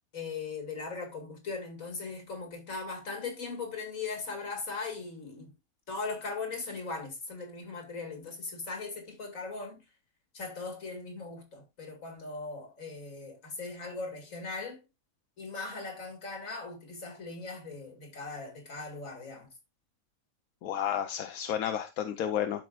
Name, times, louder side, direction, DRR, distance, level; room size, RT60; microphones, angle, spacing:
voice 1, 0.1-5.5 5.9-9.8 10.3-14.8 15.4-19.5, left 4 dB, 70° left, 2.5 m, -39 dB
voice 2, 20.6-22.6, left 9 dB, 90° left, 1.1 m, -31 dB
12.0 x 5.4 x 2.4 m
omnidirectional pair, 1.4 m